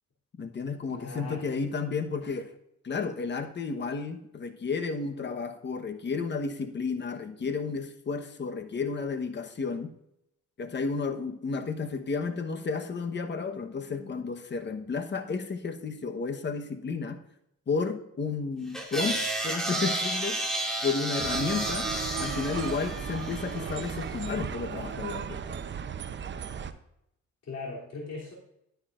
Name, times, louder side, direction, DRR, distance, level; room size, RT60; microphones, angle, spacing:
voice 1, 0.4-2.5 2.8-9.9 10.6-17.2 17.7-20.4 20.8-21.9 22.2-25.6, left 4 dB, 35° left, 7 dB, 1.1 m, -32 dB
voice 2, 0.9-1.5 27.4-28.4, left 3 dB, 55° left, -4 dB, 3.2 m, -39 dB
sound 1, 18.7-24.1, right 1 dB, ahead, 2.3 m, -32 dB
sound 2, 21.2-26.7, right 7 dB, 40° right, 0.7 m, -36 dB
11.5 x 10.0 x 2.5 m, 0.78 s
cardioid pair, 90°, 30 cm